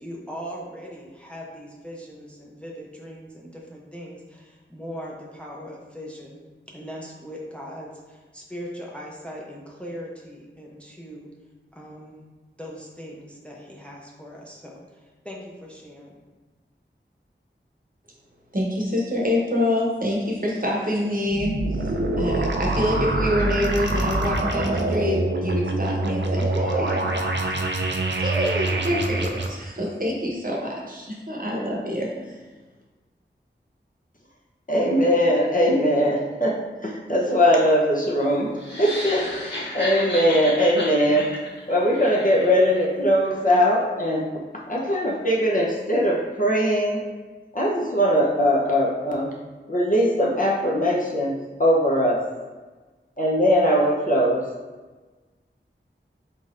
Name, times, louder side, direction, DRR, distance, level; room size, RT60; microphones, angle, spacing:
voice 1, 0.0-11.3 11.7-12.2 12.6-14.8 15.2-16.1, equal, 5° left, -3 dB, 0.6 m, -39 dB
voice 2, 18.5-21.8 22.2-27.2 28.2-32.4, left 1 dB, 45° right, -3 dB, 0.9 m, -26 dB
sound 1, 21.3-29.5, right 2 dB, 65° right, 0.5 m, -25 dB
voice 3, 34.7-36.6 36.8-41.3 41.7-44.3 44.7-47.0 47.5-49.3 49.7-52.2 53.2-54.4, equal, 45° left, -3 dB, 0.7 m, -21 dB
sound 2, 38.6-42.8, left 1 dB, 60° left, 1.4 m, -32 dB
4.0 x 3.8 x 2.5 m, 1.3 s
wide cardioid pair, 45°, 20 cm